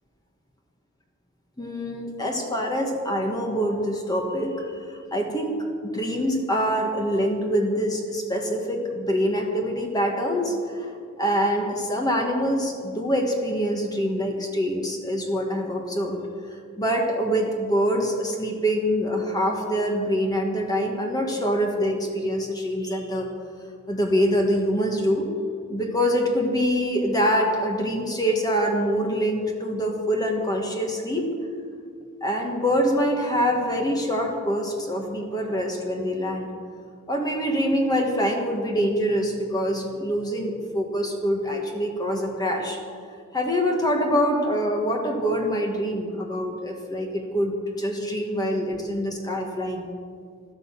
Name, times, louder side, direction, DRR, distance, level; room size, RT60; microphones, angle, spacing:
voice 1, 1.6-5.6 5.9-10.9 11.2-16.2 16.8-23.3 23.9-25.3 25.7-31.3 32.2-36.5 37.1-42.8 43.3-49.9, equal, 20° left, 1 dB, 1.6 m, -25 dB
12.5 x 12.5 x 7.5 m, 2.1 s
head